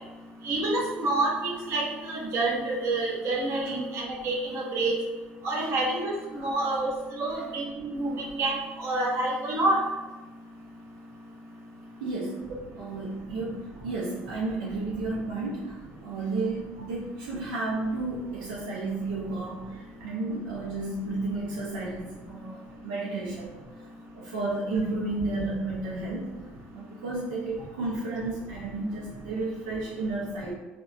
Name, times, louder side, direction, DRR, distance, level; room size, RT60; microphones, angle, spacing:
voice 1, 0.4-5.0 5.4-6.1 6.4-9.8, right 2 dB, 60° right, -2 dB, 0.7 m, -28 dB
voice 2, 12.0-12.4 12.8-23.6 24.1-26.3 26.7-30.5, right 2 dB, 85° right, -5 dB, 0.4 m, -32 dB
2.8 x 2.0 x 2.3 m, 1.2 s
supercardioid pair, 70°, 5 cm